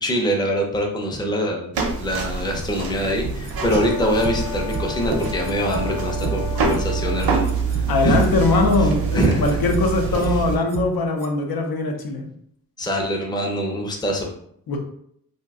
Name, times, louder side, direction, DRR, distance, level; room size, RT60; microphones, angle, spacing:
voice 1, 0.0-8.3 9.1-9.6 12.8-14.3, equal, 10° left, 1 dB, 0.4 m, -24 dB
sound 1, 1.7-10.6, right 5 dB, 90° right, 0.6 m, -25 dB
sound 2, 3.3-3.9 4.2-4.3 4.7-4.8 5.2-5.8 6.2-6.3 6.7-6.9 7.2-7.9 8.2-8.3 8.7-8.8 9.2-9.9 10.2-10.3 10.7-10.9 11.2-11.3, right 5 dB, 45° right, 0.4 m, -30 dB
Brass instrument, 3.6-7.5, left 12 dB, 55° left, 0.8 m, -34 dB
voice 2, 7.9-12.3 14.7-14.8, left 3 dB, 90° left, 3 dB, 0.6 m, -21 dB
2.6 x 2.1 x 3.5 m, 0.68 s
wide cardioid pair, 130°, 35 cm